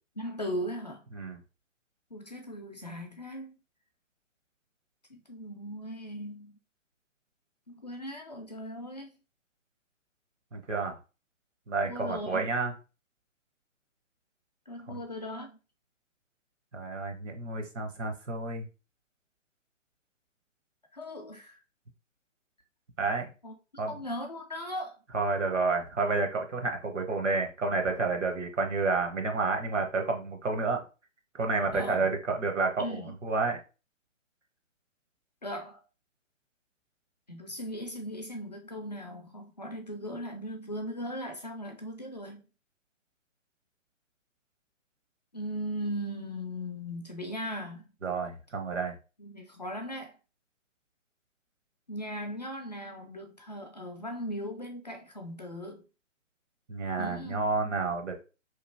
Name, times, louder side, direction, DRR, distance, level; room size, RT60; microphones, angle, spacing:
voice 1, 0.2-1.0 2.1-3.6 5.1-6.6 7.7-9.1 11.8-12.5 14.7-15.5 20.9-21.6 23.4-25.0 31.7-32.1 32.8-33.2 35.4-35.8 37.3-42.4 45.3-47.9 49.2-50.2 51.9-55.8 57.0-57.8, equal, 35° left, 0.4 m, -38 dB
voice 2, 10.5-11.0 11.7-12.7 14.9-15.0 16.7-18.7 23.0-23.3 23.8-24.0 25.1-30.8 31.3-33.6 48.0-48.9 56.7-58.2, right 3 dB, 65° right, 0.9 m, -30 dB
3.0 x 2.5 x 2.6 m
figure-of-eight pair, 135°, 39 cm